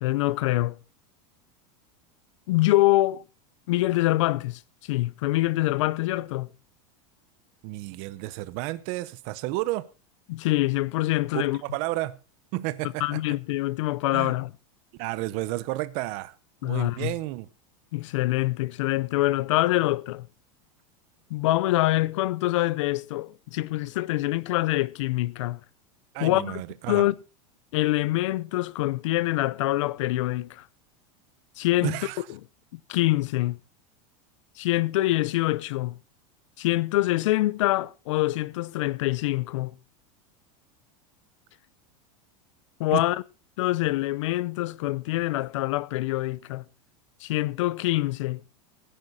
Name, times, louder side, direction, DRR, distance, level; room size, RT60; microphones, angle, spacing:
voice 1, 0.0-0.8 2.5-3.2 3.7-4.6 4.9-6.5 10.3-11.6 13.0-14.5 16.6-17.1 17.9-20.3 21.3-25.6 26.2-26.6 26.9-27.2 27.7-30.7 31.6-32.0 32.7-33.6 34.6-36.0 36.6-39.8 42.8-43.2 43.6-46.6 47.2-48.4, left 17 dB, 60° left, 0.7 m, -25 dB
voice 2, 7.6-9.9 11.3-12.2 12.5-13.3 14.1-14.3 15.0-16.4 16.6-17.5 26.1-27.1 31.8-32.3 42.9-43.0, right 18 dB, 35° right, 0.7 m, -31 dB
16.0 x 10.0 x 4.1 m
supercardioid pair, 175°, 18 cm